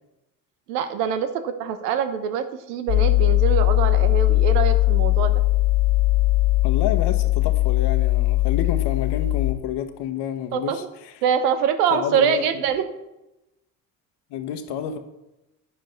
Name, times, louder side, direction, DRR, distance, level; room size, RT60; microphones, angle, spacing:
voice 1, 0.7-5.3 10.5-10.8 11.2-12.8, right 8 dB, 70° right, 10 dB, 1.1 m, -24 dB
sound 1, 2.9-9.5, left 19 dB, 75° left, 1.5 m, -19 dB
voice 2, 6.6-10.8 11.9-12.4 14.3-15.0, left 9 dB, 55° left, 8 dB, 1.3 m, -29 dB
9.9 x 7.8 x 4.5 m, 0.95 s
hypercardioid pair, 65°, 48 cm